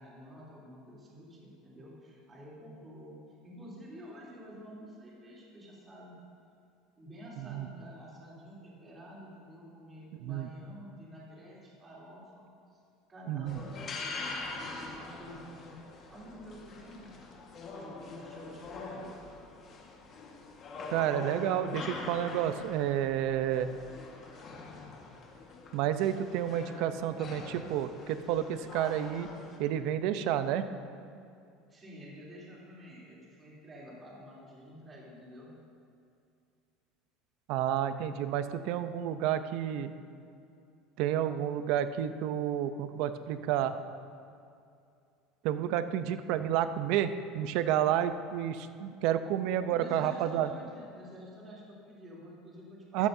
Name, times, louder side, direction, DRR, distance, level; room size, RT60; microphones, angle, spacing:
voice 1, 0.0-6.2 7.0-12.8 13.1-14.4 14.8-15.7 16.1-17.1 17.7-19.1 31.7-35.5 49.7-53.1, equal, 20° right, -6 dB, 3.2 m, -49 dB
voice 2, 7.4-7.7 10.2-10.5 13.3-13.6 20.9-23.7 25.7-29.3 29.6-30.6 37.5-39.9 41.0-43.8 45.4-50.5 52.9-53.1, right 10 dB, 65° right, 11 dB, 0.6 m, -30 dB
sound 1, 13.5-29.6, left 3 dB, 35° left, 1.5 m, -44 dB
14.5 x 12.5 x 2.7 m, 2.5 s
cardioid pair, 145°, 0 cm